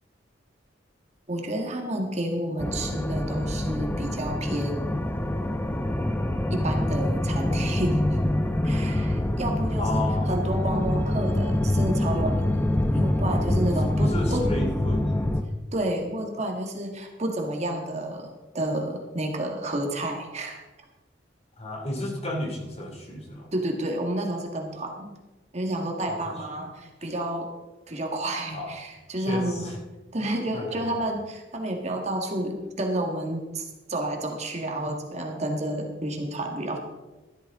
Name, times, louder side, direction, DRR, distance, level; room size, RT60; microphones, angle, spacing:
voice 1, 1.3-5.0 6.5-8.0 8.6-12.6 12.9-14.5 15.7-18.3 18.5-20.6 23.5-25.1 25.5-27.5 27.9-29.7 30.1-36.8, right 1 dB, 40° right, 2 dB, 1.7 m, -30 dB
sound 1, 2.6-15.4, left 1 dB, 10° left, 0.6 m, -25 dB
voice 2, 9.8-10.4 13.6-15.3 21.6-23.5 26.1-26.2 28.5-28.7 29.2-29.8 30.2-30.9, left 1 dB, 35° left, 0 dB, 2.7 m, -33 dB
13.5 x 12.5 x 3.7 m, 1.1 s
head